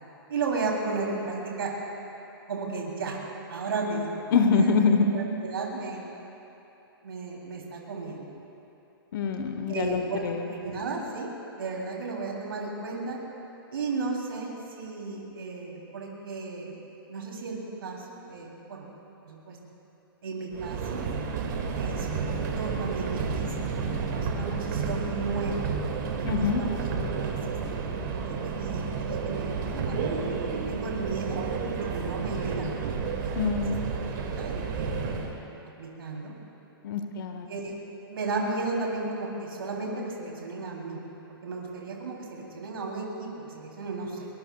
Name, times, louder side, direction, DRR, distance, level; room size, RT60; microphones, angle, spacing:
voice 1, 0.3-1.7 2.5-3.2 3.5-4.2 4.5-4.8 5.1-6.0 7.0-8.4 9.7-11.3 11.6-13.2 13.7-16.7 17.1-18.9 19.2-19.6 20.2-21.0 21.7-25.6 26.2-26.9 27.1-27.8 28.1-31.4 31.8-32.9 33.2-33.3 33.9-34.0 34.4-35.2 35.8-36.3 37.5-37.7 38.1-41.0 41.4-44.3, right 3 dB, 70° right, -2 dB, 3.4 m, -34 dB
voice 2, 4.3-5.1 9.1-10.5 26.2-26.6 33.3-33.9 36.8-37.5, left 5 dB, 60° left, 6 dB, 1.2 m, -25 dB
Subway metro underground, 20.5-35.4, right 5 dB, 50° right, 2.1 m, -31 dB
23.0 x 22.0 x 2.4 m, 3.0 s
hypercardioid pair, 120°, 13 cm